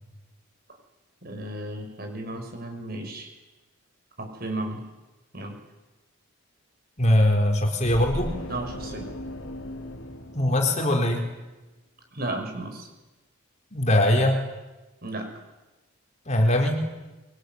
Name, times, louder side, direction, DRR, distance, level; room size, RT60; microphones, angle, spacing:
voice 1, 1.2-3.3 4.2-4.9 5.3-5.6 8.5-9.1 12.1-12.9 15.0-15.3, right 1 dB, 45° right, 4 dB, 6.2 m, -34 dB
voice 2, 7.0-8.4 10.3-11.2 13.7-14.4 16.3-16.8, left 1 dB, 35° left, 3 dB, 4.1 m, -21 dB
sound 1, 7.8-11.3, left 1 dB, 75° left, 3.1 m, -37 dB
26.0 x 23.5 x 9.4 m, 1.1 s
head